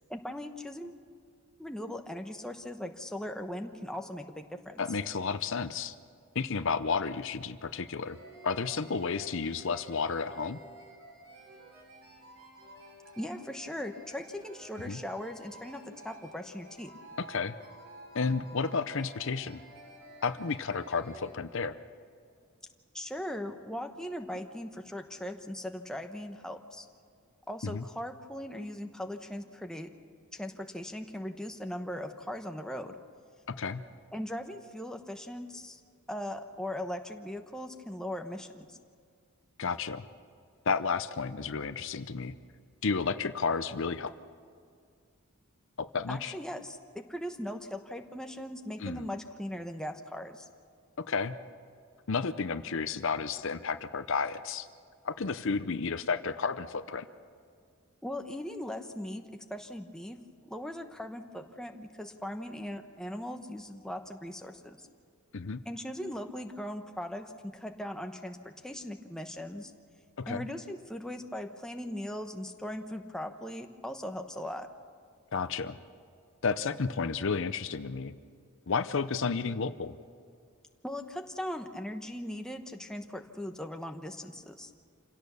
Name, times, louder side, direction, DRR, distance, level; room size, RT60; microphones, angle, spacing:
voice 1, 0.1-1.0 1.6-4.8 13.2-16.9 22.9-26.9 27.5-29.9 30.3-33.0 34.1-35.8 36.1-38.8 46.1-50.5 58.0-64.9 65.7-69.7 70.3-74.7 80.8-84.7, left 1 dB, 5° left, 4 dB, 1.0 m, -39 dB
voice 2, 4.8-5.9 6.3-8.2 8.4-10.6 14.9-15.0 17.2-17.5 18.1-19.6 20.2-21.8 27.6-27.8 33.5-33.8 39.6-40.0 40.7-42.4 42.8-44.1 45.8-46.3 48.8-49.1 51.0-51.4 52.1-54.7 55.0-57.1 65.3-65.6 70.2-70.5 75.3-75.8 76.4-78.2 78.7-79.9, left 5 dB, 60° left, 12 dB, 0.7 m, -32 dB
sound 1, 8.0-21.3, right 1 dB, 60° right, 5.6 m, -52 dB
27.0 x 17.0 x 6.9 m, 2.2 s
head